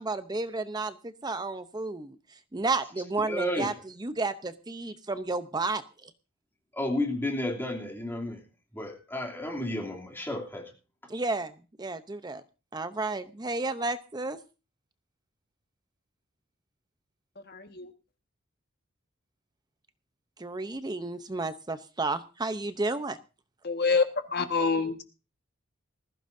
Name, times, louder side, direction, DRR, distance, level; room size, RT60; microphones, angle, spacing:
voice 1, 0.0-2.2 2.5-3.7 4.0-6.1 11.1-11.5 11.8-12.4 12.7-14.4 20.4-23.2, right 3 dB, 20° right, 11 dB, 0.7 m, -32 dB
voice 2, 3.3-3.8 6.7-8.4 8.7-10.7, left 1 dB, 10° left, 0 dB, 2.9 m, -32 dB
voice 3, 17.5-17.9 23.6-24.1 24.3-25.0, left 4 dB, 50° left, 6 dB, 1.6 m, -26 dB
20.0 x 15.0 x 2.7 m, 0.32 s
head